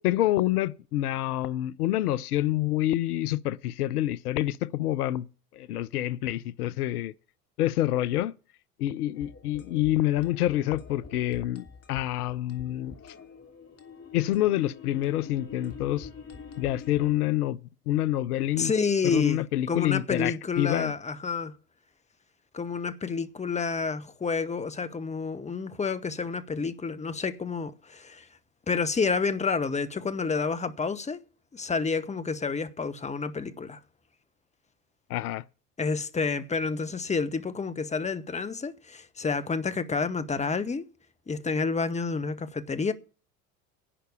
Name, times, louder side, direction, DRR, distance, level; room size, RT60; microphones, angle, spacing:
voice 1, 0.0-5.3 5.5-7.1 7.6-8.3 8.8-13.0 14.1-16.1 16.6-17.6 17.9-18.7 19.0-20.9 35.1-35.4, left 14 dB, 75° left, 0.7 m, -27 dB
sound 1, 9.1-17.1, left 5 dB, 30° left, 3.1 m, -46 dB
voice 2, 18.6-19.4 19.7-21.5 22.5-28.3 28.7-31.2 31.5-33.8 35.8-40.9 41.3-42.9, left 4 dB, 15° left, 1.2 m, -29 dB
11.5 x 6.6 x 8.3 m
hypercardioid pair, 75°, 46 cm